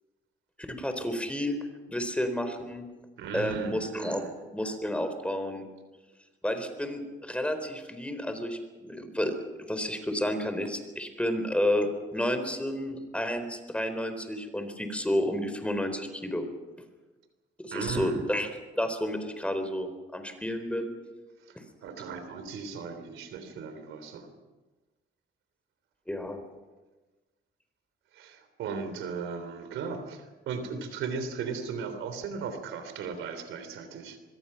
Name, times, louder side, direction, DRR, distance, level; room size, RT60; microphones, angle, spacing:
voice 1, 0.7-1.6 1.9-2.9 3.3-5.7 6.4-9.3 9.7-16.4 17.6-18.5 18.8-20.9 26.1-26.4, left 1 dB, 5° left, 8 dB, 4.1 m, -31 dB
voice 2, 3.2-4.3 17.7-18.3 21.5-21.6 21.8-24.3 28.1-34.2, right 5 dB, 85° right, 9 dB, 3.5 m, -36 dB
24.5 x 22.0 x 5.8 m, 1.2 s
cardioid pair, 90°, 20 cm